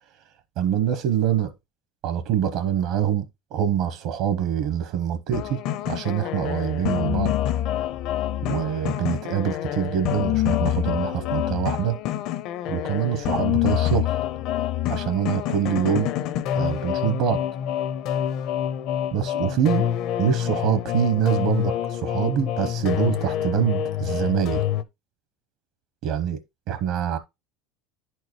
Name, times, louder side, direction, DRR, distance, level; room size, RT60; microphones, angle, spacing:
voice 1, 0.6-1.5 2.0-7.3 8.4-12.0 12.7-14.1 14.9-16.1 16.5-17.4 19.1-19.9 20.2-24.6 26.0-26.4 26.7-27.2, right 10 dB, 60° right, 0.9 m, -25 dB
sound 1, 5.3-24.8, left 11 dB, 55° left, 0.6 m, -26 dB
10.5 x 4.5 x 3.0 m
supercardioid pair, 135°, 0 cm